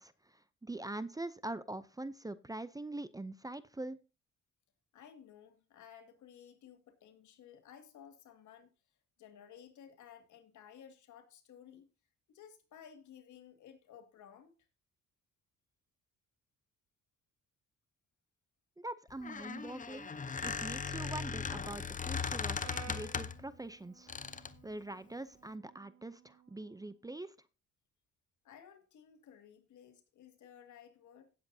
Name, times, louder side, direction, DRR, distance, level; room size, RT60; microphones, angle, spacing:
voice 1, 0.0-4.0 18.8-20.1 20.4-27.3, right 2 dB, 10° right, 0.6 m, -44 dB
voice 2, 4.9-8.7 9.2-11.9 12.3-14.5 28.4-31.3, left 8 dB, 75° left, 2.2 m, -56 dB
Squeak, 19.1-23.5 24.1-24.6, left 5 dB, 25° left, 0.7 m, -38 dB
Brass instrument, 22.6-26.8, right 8 dB, 75° right, 4.1 m, -55 dB
17.0 x 7.7 x 2.7 m
cardioid pair, 90°, 30 cm